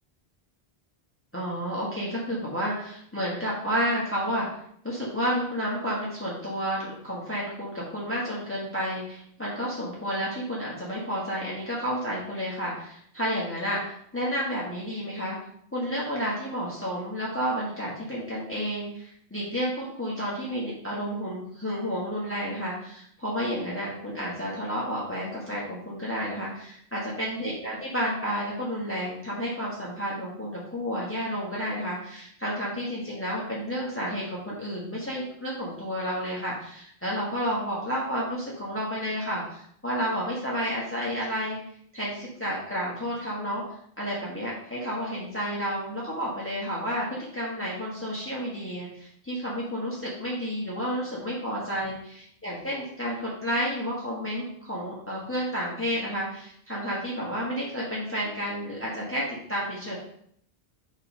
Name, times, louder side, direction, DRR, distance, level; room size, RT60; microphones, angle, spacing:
voice 1, 1.3-4.6 4.8-15.4 15.7-41.6 41.9-43.6 44.0-60.0, equal, 10° left, -6 dB, 1.6 m, -31 dB
8.0 x 3.6 x 5.6 m, 0.67 s
omnidirectional pair, 1.0 m